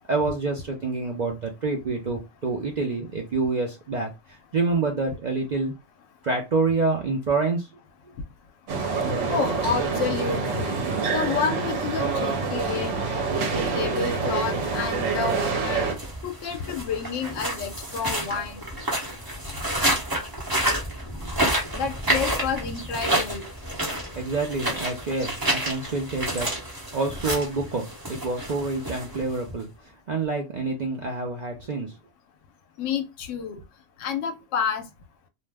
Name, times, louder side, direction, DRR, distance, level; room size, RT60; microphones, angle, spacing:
voice 1, 0.1-5.7 6.2-7.7 21.2-21.5 24.2-26.5 26.9-29.7 30.1-32.0, right 3 dB, 55° right, 0.5 m, -27 dB
sound 1, 8.7-15.9, right 4 dB, 75° right, 1.0 m, -26 dB
voice 2, 9.3-12.9 13.5-15.9 16.2-18.6 21.7-23.5 32.8-33.6 34.0-34.9, left 6 dB, 75° left, 0.9 m, -29 dB
sound 2, 14.0-29.6, right 1 dB, 20° right, 0.8 m, -30 dB
2.5 x 2.0 x 3.3 m
omnidirectional pair, 1.3 m